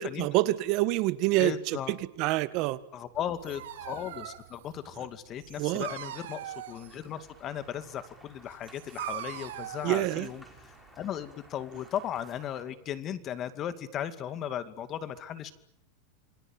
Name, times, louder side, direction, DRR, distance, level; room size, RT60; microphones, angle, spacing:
voice 1, 0.0-1.8 2.2-2.8 5.6-5.9 9.8-10.3, right 17 dB, 45° right, 1.7 m, -26 dB
voice 2, 1.4-2.0 2.9-15.5, left 10 dB, 30° left, 2.4 m, -37 dB
Dog, 3.1-11.0, right 12 dB, 85° right, 4.0 m, -42 dB
sound 1, 5.5-12.6, equal, 5° left, 5.6 m, -57 dB
28.5 x 23.0 x 9.0 m
supercardioid pair, 150°, 0 cm